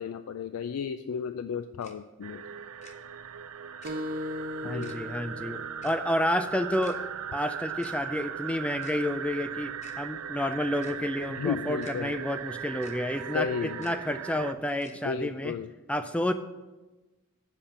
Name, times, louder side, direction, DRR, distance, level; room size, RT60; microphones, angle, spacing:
voice 1, 0.0-2.4 4.6-4.9 11.3-12.1 13.3-13.9 15.0-15.7, left 6 dB, 85° left, 10 dB, 0.3 m, -33 dB
Tick-tock, 1.8-1.9 2.8-3.0 3.8-3.9 4.8-5.0 5.8-6.0 6.8-7.0 7.8-8.0 8.8-9.0 9.8-10.0 10.8-11.0 11.8-11.9 12.8-13.0 13.8-13.9 14.8-15.0, left 3 dB, 30° left, 0.7 m, -51 dB
sound 1, 2.2-14.5, right 8 dB, 75° right, 0.4 m, -38 dB
sound 2, 3.8-9.0, left 1 dB, 45° right, 0.9 m, -41 dB
voice 2, 4.6-7.0 7.3-15.5 15.9-16.3, left 1 dB, 5° left, 9 dB, 0.3 m, -30 dB
7.4 x 5.3 x 6.9 m, 1.1 s
head